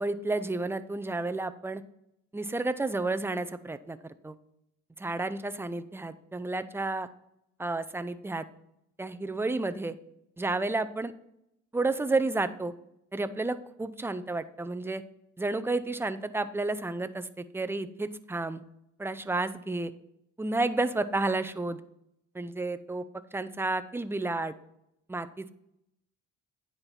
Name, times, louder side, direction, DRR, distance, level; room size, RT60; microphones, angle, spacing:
voice 1, 0.0-1.8 2.3-4.3 5.0-7.1 7.6-8.4 9.0-10.0 10.4-11.1 11.7-12.7 13.1-15.0 15.4-18.6 19.0-19.9 20.4-21.8 22.3-23.0 23.3-24.5 25.1-25.5, right 2 dB, 10° right, 11 dB, 0.5 m, -31 dB
9.6 x 4.5 x 5.6 m, 0.81 s
cardioid pair, 90°, 30 cm